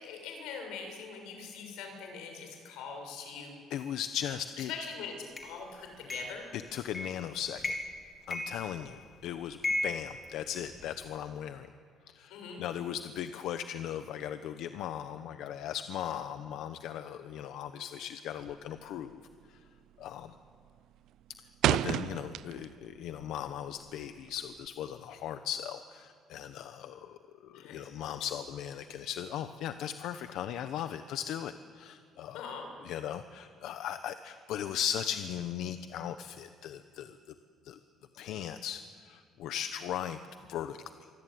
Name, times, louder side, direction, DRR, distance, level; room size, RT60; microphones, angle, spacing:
voice 1, 0.0-3.5 4.7-6.5 12.3-12.6 27.5-27.8 32.3-32.7, left 5 dB, 85° left, 3 dB, 6.8 m, -42 dB
voice 2, 3.7-4.7 6.5-7.7 8.3-11.7 12.1-19.2 19.5-19.6 20.0-20.3 21.7-32.5 32.8-37.2 37.6-37.8 38.1-40.2 40.5-41.1, left 10 dB, 60° left, 10 dB, 1.0 m, -38 dB
sound 1, 5.4-5.5 6.1-6.4 6.9-7.2 7.6-8.0 8.3-9.1 9.6-10.9, left 2 dB, 20° left, 3.1 m, -35 dB
sound 2, 18.4-18.8 19.1-19.4 19.8-20.2 20.5-22.9 23.2-24.7, right 12 dB, 60° right, 0.6 m, -31 dB
25.5 x 24.5 x 9.4 m, 2.3 s
cardioid pair, 175°, 0 cm